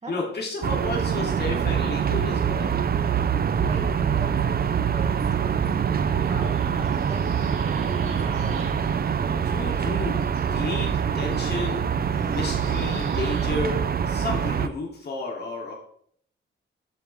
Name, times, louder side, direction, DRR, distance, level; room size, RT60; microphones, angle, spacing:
voice 1, 0.1-2.7 9.4-11.9 12.2-15.7, left 3 dB, 50° left, -1 dB, 2.9 m, -32 dB
sound 1, 0.6-14.7, right 7 dB, 45° right, 0.6 m, -24 dB
voice 2, 3.2-5.8 6.1-7.2 7.7-8.9, right 2 dB, 30° right, -1 dB, 3.1 m, -42 dB
sound 2, 5.9-9.4 9.6-13.5, right 4 dB, 85° right, 2.7 m, -48 dB
sound 3, 7.7-13.7, equal, ahead, 1.7 m, -46 dB
12.0 x 7.4 x 3.5 m, 0.64 s
wide cardioid pair, 135°, 21 cm